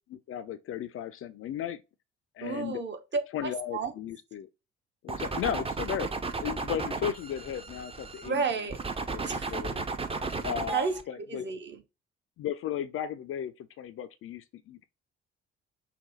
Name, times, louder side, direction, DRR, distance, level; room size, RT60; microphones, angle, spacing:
voice 1, 0.1-1.8 2.4-2.8 3.3-4.5 5.0-6.1 6.4-8.4 9.1-9.2 9.5-9.8 10.4-11.5 12.4-14.9, left 10 dB, 45° left, 0.5 m, -35 dB
voice 2, 2.4-3.2 3.7-3.9 8.2-8.8 9.2-9.5 10.7-10.9 11.3-11.8, right 5 dB, 35° right, 1.0 m, -31 dB
sound 1, 5.1-8.3 8.7-11.0, right 3 dB, 20° right, 0.7 m, -34 dB
5.7 x 2.2 x 3.9 m
figure-of-eight pair, 45°, 31 cm